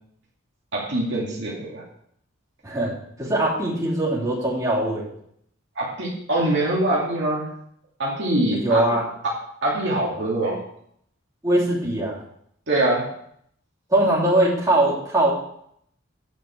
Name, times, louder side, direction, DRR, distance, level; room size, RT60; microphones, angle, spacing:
voice 1, 0.7-1.8 5.8-7.5 8.0-8.9 9.6-10.6 12.7-13.1, right 1 dB, 60° right, -4 dB, 2.5 m, -23 dB
voice 2, 2.6-5.1 8.5-9.1 11.4-12.2 13.9-15.3, right 1 dB, 15° right, -7 dB, 3.2 m, -21 dB
9.2 x 5.2 x 7.1 m, 0.69 s
head